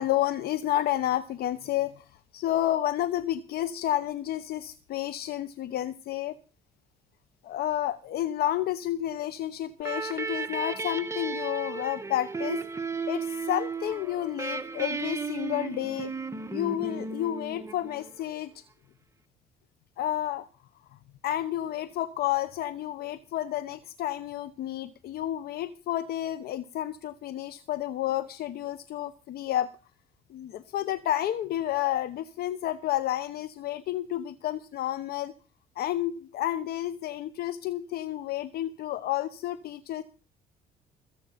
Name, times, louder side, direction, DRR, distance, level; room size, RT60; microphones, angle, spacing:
voice 1, 0.0-6.4 7.4-12.6 13.1-16.1 16.5-18.5 20.0-20.5 21.2-29.7 30.3-35.3 35.8-40.0, left 13 dB, 65° left, 13 dB, 1.0 m, -30 dB
sound 1, 9.8-18.3, right 4 dB, 15° right, 1.6 m, -34 dB
21.0 x 8.3 x 5.8 m, 0.36 s
cardioid pair, 110°, 17 cm